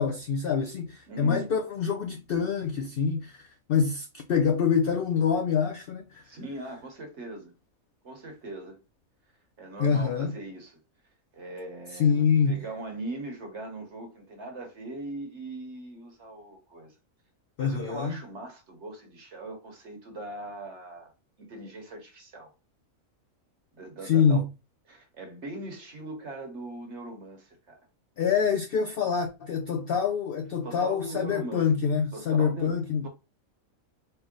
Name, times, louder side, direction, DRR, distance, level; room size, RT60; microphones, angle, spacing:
voice 1, 0.0-6.2 9.8-10.3 11.9-12.6 17.6-18.2 24.0-24.5 28.2-33.1, left 6 dB, 70° left, 0.5 m, -26 dB
voice 2, 1.1-1.5 6.2-7.5 8.0-8.8 9.6-10.8 11.3-16.9 17.6-21.1 21.4-22.5 23.8-24.4 24.9-27.8 30.6-31.7 32.1-33.1, right 2 dB, 55° right, 1.3 m, -40 dB
4.5 x 2.0 x 3.7 m
omnidirectional pair, 1.4 m